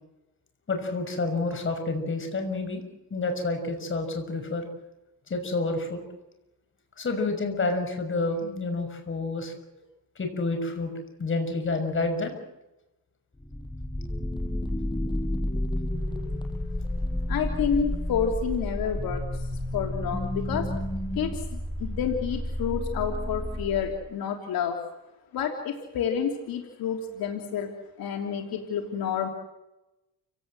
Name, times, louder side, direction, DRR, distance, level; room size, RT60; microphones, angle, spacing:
voice 1, 0.7-2.8 3.1-4.7 5.3-6.0 7.0-9.5 10.2-10.9 11.2-12.4, left 3 dB, 35° left, 6 dB, 6.2 m, -29 dB
sound 1, 13.4-24.0, left 1 dB, 10° left, 6.6 m, -31 dB
voice 2, 17.3-20.7 21.1-24.8 25.3-27.7 28.0-29.3, left 7 dB, 75° left, 3 dB, 3.3 m, -29 dB
29.5 x 17.5 x 7.9 m, 0.96 s
cardioid pair, 120°, 36 cm